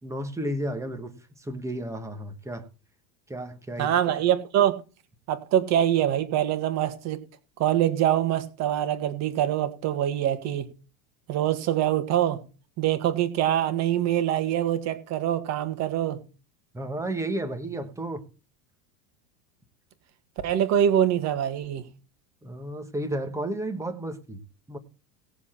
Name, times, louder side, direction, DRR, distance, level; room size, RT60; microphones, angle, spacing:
voice 1, 0.0-2.7 3.3-3.9 16.7-18.2 22.4-24.4 24.7-24.8, right 1 dB, 5° right, 1.2 m, -32 dB
voice 2, 3.8-4.8 5.3-7.2 7.6-10.7 11.3-12.4 12.8-16.2 20.4-21.8, right 11 dB, 35° right, 1.7 m, -24 dB
18.5 x 7.2 x 4.3 m
supercardioid pair, 170°, 48 cm